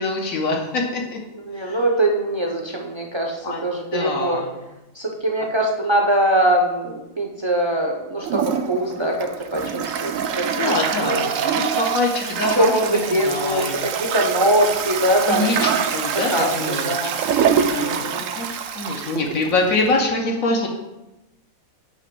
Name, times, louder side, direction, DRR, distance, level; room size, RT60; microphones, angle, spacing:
voice 1, 0.0-1.2 1.6-1.8 3.4-3.6 3.9-4.5 10.5-13.7 15.2-17.0 17.3-18.1 18.4-18.5 18.7-20.7, left 3 dB, 75° left, 0 dB, 1.4 m, -24 dB
voice 2, 1.3-4.4 4.9-11.6 12.5-15.7 16.3-17.1 17.8-18.3, right 1 dB, 30° right, 1 dB, 0.5 m, -22 dB
Toilet flush, 8.2-20.0, right 7 dB, 75° right, 0.9 m, -25 dB
8.6 x 3.0 x 6.0 m, 0.97 s
omnidirectional pair, 1.5 m